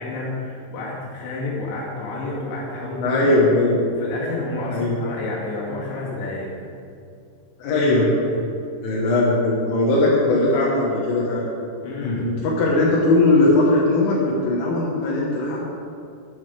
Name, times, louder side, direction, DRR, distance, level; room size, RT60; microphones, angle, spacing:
voice 1, 0.0-3.4 4.0-6.5 8.3-8.4 11.8-12.3, left 2 dB, 65° left, -5 dB, 4.3 m, -30 dB
voice 2, 3.0-3.8 4.7-4.9 7.6-8.1 8.8-11.5 12.0-15.7, left 2 dB, 85° left, -5 dB, 4.0 m, -19 dB
12.0 x 8.4 x 4.9 m, 2.4 s
omnidirectional pair, 5.6 m